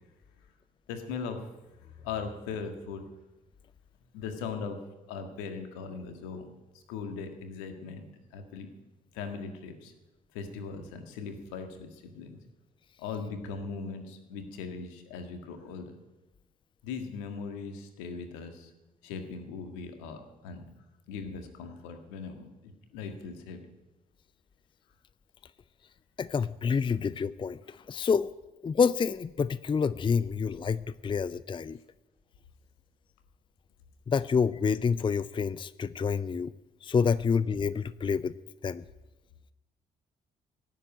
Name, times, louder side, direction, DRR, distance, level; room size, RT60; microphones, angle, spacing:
voice 1, 0.9-1.4 1.8-3.0 4.1-4.8 5.1-8.7 9.1-9.9 10.3-12.4 13.0-15.9 16.8-18.7 19.0-20.6 21.1-23.6, left 5 dB, 70° left, 6 dB, 1.8 m, -39 dB
voice 2, 26.2-28.3 28.6-31.8 34.1-36.5 36.8-38.3 38.6-38.8, left 6 dB, 25° left, 17 dB, 0.5 m, -28 dB
16.5 x 7.7 x 9.4 m, 1.0 s
figure-of-eight pair, 45°, 21 cm